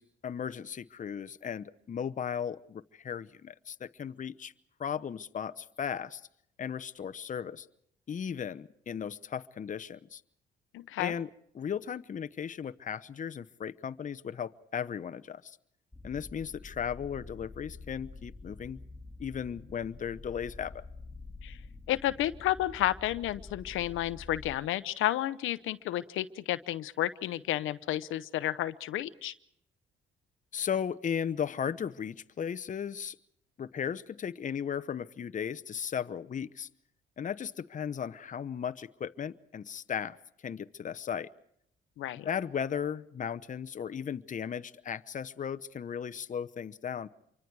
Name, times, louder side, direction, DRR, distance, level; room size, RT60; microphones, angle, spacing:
voice 1, 0.0-4.5 4.8-6.2 6.6-7.7 8.1-10.2 11.0-11.3 11.5-15.6 16.0-18.8 19.2-20.9 30.5-33.2 33.6-36.7 37.2-40.2 40.4-41.3 42.2-47.1, left 8 dB, 40° left, 12 dB, 0.8 m, -36 dB
voice 2, 10.7-11.1 21.4-21.6 21.9-29.3 42.0-42.3, left 14 dB, 85° left, 13 dB, 0.8 m, -31 dB
sound 1, 15.9-24.6, left 3 dB, 5° left, 2.8 m, -47 dB
27.0 x 24.0 x 4.7 m, 0.73 s
cardioid pair, 90°, 20 cm